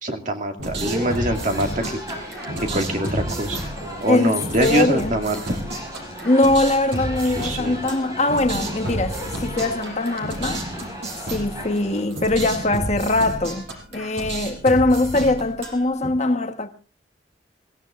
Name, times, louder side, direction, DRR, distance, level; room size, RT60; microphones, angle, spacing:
voice 1, 0.0-1.8 2.6-3.6 4.0-5.6 7.4-7.8, right 1 dB, 45° right, 2.2 m, -24 dB
sound 1, 0.6-16.1, right 1 dB, 75° right, 5.3 m, -31 dB
sound 2, 0.8-12.0, equal, 20° right, 5.3 m, -36 dB
voice 2, 4.6-5.1 6.2-10.6 11.3-13.6 13.9-16.7, left 2 dB, 40° left, 1.2 m, -21 dB
27.5 x 16.0 x 2.5 m
head